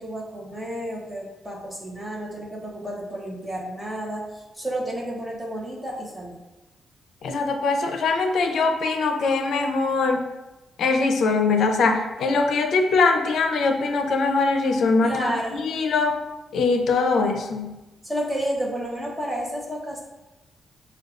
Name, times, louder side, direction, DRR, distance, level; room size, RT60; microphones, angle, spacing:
voice 1, 0.0-6.4 15.0-15.7 18.0-20.0, equal, 15° right, -3 dB, 0.9 m, -31 dB
voice 2, 7.2-10.3 10.8-15.3 15.6-16.2 16.5-17.8, left 3 dB, 80° left, 5 dB, 0.5 m, -22 dB
6.3 x 2.3 x 2.4 m, 1.0 s
cardioid pair, 120°, 0 cm